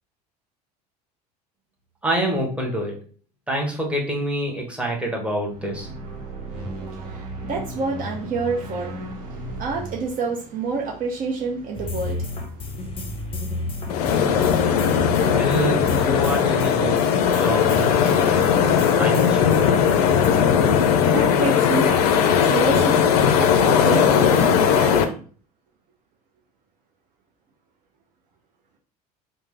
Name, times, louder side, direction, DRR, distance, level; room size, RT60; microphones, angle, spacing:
voice 1, 2.0-3.0 3.5-5.9 15.2-18.7 19.0-19.7, right 1 dB, 5° right, -1 dB, 1.1 m, -27 dB
sound 1, 5.4-11.7, right 1 dB, 75° right, 0.9 m, -36 dB
voice 2, 6.2-15.3 21.1-23.1 23.4-25.2, right 4 dB, 45° right, 0 dB, 0.7 m, -30 dB
sound 2, 11.7-20.3, left 2 dB, 25° left, 0.7 m, -32 dB
sound 3, 13.9-25.0, left 7 dB, 70° left, 0.5 m, -18 dB
3.2 x 2.0 x 3.3 m, 0.41 s
hypercardioid pair, 70°, 20 cm